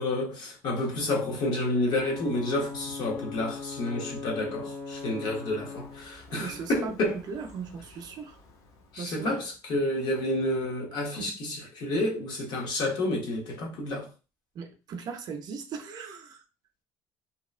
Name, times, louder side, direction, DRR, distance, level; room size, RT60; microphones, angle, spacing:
voice 1, 0.0-7.2 8.9-14.1, left 1 dB, 55° left, 1.0 m, -30 dB
Ocean / Boat Water vehicle / Alarm, 1.9-9.4, left 4 dB, 85° left, 0.8 m, -42 dB
voice 2, 6.3-8.4 9.0-9.4 14.5-16.4, right 5 dB, 50° right, 0.5 m, -38 dB
2.8 x 2.2 x 2.4 m
cardioid pair, 125°, 9 cm